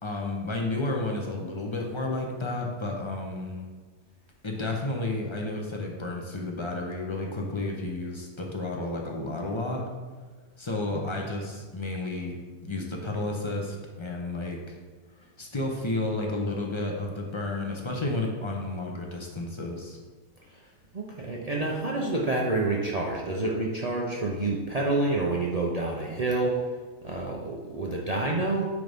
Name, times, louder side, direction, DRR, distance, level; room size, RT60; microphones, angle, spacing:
voice 1, 0.0-3.7 4.4-9.9 10.6-14.8 15.2-20.0, left 2 dB, 25° left, 0 dB, 0.6 m, -32 dB
voice 2, 20.9-26.6 27.0-28.7, right 2 dB, 45° right, -2 dB, 0.5 m, -28 dB
9.4 x 3.9 x 3.5 m, 1.4 s
omnidirectional pair, 1.6 m